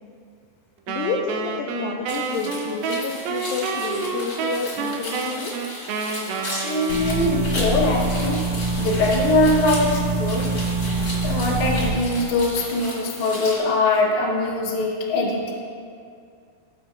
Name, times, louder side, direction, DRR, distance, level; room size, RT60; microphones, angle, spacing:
voice 1, 0.9-5.5, left 6 dB, 85° left, 0 dB, 2.1 m, -30 dB
Wind instrument woodwind instrument, 0.9-7.7, right 5 dB, 80° right, 2.2 m, -29 dB
sound 1, 2.1-13.6, left 1 dB, 35° left, 2.0 m, -35 dB
voice 2, 6.6-8.5 8.8-10.5 11.2-15.5, left 2 dB, 65° left, -3 dB, 1.4 m, -22 dB
sound 2, 6.9-11.9, right 2 dB, 55° right, 2.4 m, -24 dB
16.0 x 7.5 x 2.5 m, 2.3 s
omnidirectional pair, 4.6 m